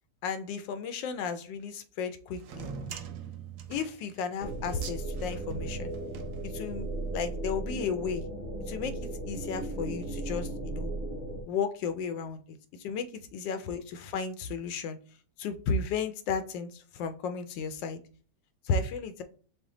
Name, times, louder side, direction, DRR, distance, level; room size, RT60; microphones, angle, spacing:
voice 1, 0.2-2.7 3.7-5.9 6.5-6.9 7.1-8.2 8.7-10.9 11.4-12.4 12.8-13.1 13.3-15.0 15.4-18.0 18.7-19.2, left 5 dB, 85° left, 9 dB, 1.3 m, -33 dB
sound 1, 2.4-7.0, right 6 dB, 70° right, 0.8 m, -43 dB
sound 2, 4.4-11.4, right 2 dB, 30° left, 1.1 m, -36 dB
5.9 x 2.1 x 3.7 m, 0.41 s
omnidirectional pair, 1.9 m